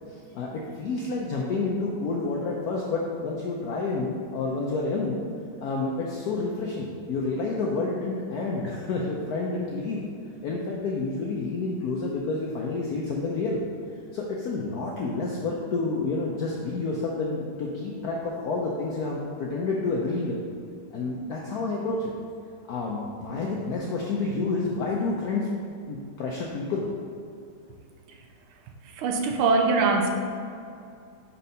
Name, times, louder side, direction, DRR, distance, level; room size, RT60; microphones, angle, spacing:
voice 1, 0.1-5.2 5.6-10.1 10.4-13.6 14.1-20.4 20.9-22.1 22.7-25.5 25.9-26.8, left 3 dB, 85° left, -2 dB, 0.8 m, -29 dB
voice 2, 29.0-30.1, right 3 dB, 85° right, 3 dB, 1.5 m, -22 dB
4.6 x 4.2 x 5.3 m, 2.4 s
omnidirectional pair, 2.3 m